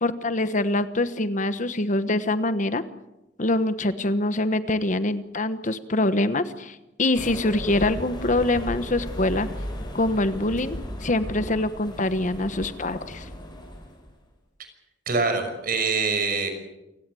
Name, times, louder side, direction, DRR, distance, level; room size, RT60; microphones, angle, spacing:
voice 1, 0.0-2.8 3.4-9.5 9.9-13.3, left 2 dB, 45° left, 12 dB, 1.2 m, -24 dB
sound 1, 7.2-14.1, equal, 25° left, 6.2 m, -36 dB
voice 2, 15.1-16.5, right 4 dB, 50° right, 6 dB, 6.1 m, -24 dB
28.5 x 17.5 x 7.8 m, 0.95 s
head